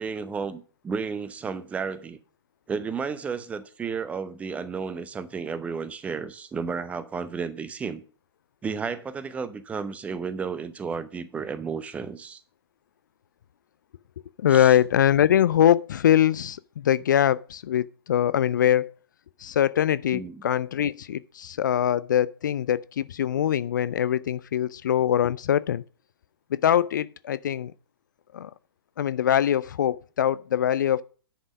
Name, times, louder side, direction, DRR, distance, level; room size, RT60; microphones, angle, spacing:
voice 1, 0.0-2.2 2.7-8.0 8.6-12.4 14.5-14.8 20.1-20.4, right 5 dB, 10° right, 0.6 m, -32 dB
voice 2, 14.4-18.9 19.4-25.8 26.5-27.7 28.3-28.5 29.0-31.0, left 10 dB, 50° left, 0.4 m, -23 dB
10.0 x 5.4 x 6.2 m
figure-of-eight pair, 115°, 13 cm